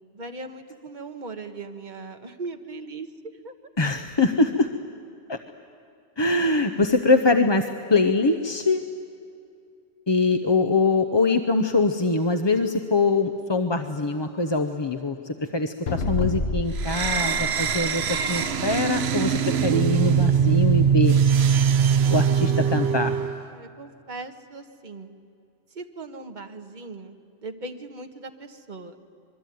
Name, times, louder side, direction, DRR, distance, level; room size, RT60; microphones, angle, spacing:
voice 1, 0.1-3.5 23.4-25.1 25.7-27.1 27.4-29.0, right 3 dB, 40° right, 5 dB, 1.5 m, -39 dB
voice 2, 3.8-4.7 5.3-5.4 6.2-8.8 10.1-21.1 22.1-23.1, left 3 dB, 25° left, 7 dB, 0.7 m, -23 dB
sound 1, 15.9-18.6, left 4 dB, 60° left, 1.4 m, -29 dB
sound 2, 16.8-23.4, right 7 dB, 65° right, 1.0 m, -22 dB
26.0 x 22.0 x 9.3 m, 2.4 s
omnidirectional pair, 1.2 m